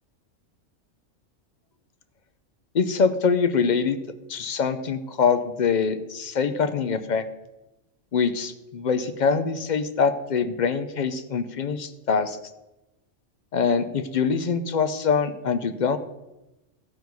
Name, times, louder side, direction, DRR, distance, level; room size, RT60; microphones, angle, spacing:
voice 1, 2.7-4.0 4.3-7.2 8.1-12.4 13.5-16.0, left 5 dB, 45° left, 10 dB, 0.7 m, -24 dB
15.0 x 5.3 x 4.7 m, 0.99 s
omnidirectional pair, 1.3 m